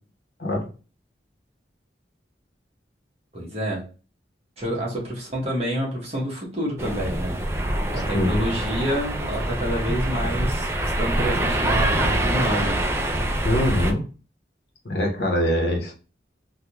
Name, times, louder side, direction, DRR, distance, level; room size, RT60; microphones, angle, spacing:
voice 1, 3.3-3.8 4.6-7.4 7.9-12.8, equal, 35° right, 1.1 m, -28 dB
sound 1, 6.8-13.9, right 1 dB, 15° right, 0.3 m, -25 dB
voice 2, 7.9-8.4 13.4-14.0 14.8-15.9, equal, 65° left, 0.9 m, -23 dB
3.5 x 2.3 x 2.9 m
head